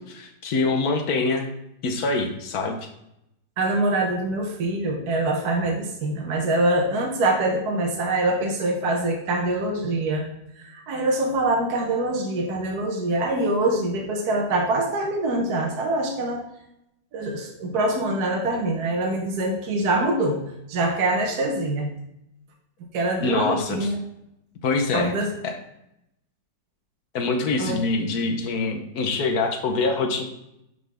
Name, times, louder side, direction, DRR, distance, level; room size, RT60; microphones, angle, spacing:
voice 1, 0.0-1.5 1.8-2.9 23.2-23.9 24.6-25.2 25.4-25.5 27.1-30.2, left 3 dB, 60° left, 4 dB, 1.2 m, -25 dB
voice 2, 3.6-10.3 10.6-16.4 17.1-21.9 22.9-24.0 24.9-25.3 27.6-27.8, right 2 dB, 60° right, 1 dB, 1.3 m, -24 dB
10.5 x 4.0 x 3.4 m, 0.82 s
omnidirectional pair, 2.0 m